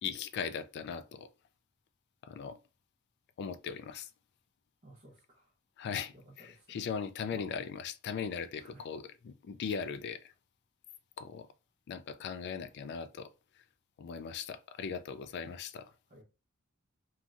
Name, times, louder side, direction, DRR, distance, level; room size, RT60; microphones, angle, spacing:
voice 1, 0.0-1.3 2.2-2.6 3.4-4.1 5.8-10.3 11.2-11.5 11.9-13.3 14.0-15.9, left 6 dB, 55° left, 0.3 m, -39 dB
voice 2, 4.8-5.5 6.1-7.0 7.3-7.4 8.6-8.9 16.1-16.2, right 1 dB, 40° right, 0.8 m, -56 dB
3.0 x 2.6 x 2.4 m
head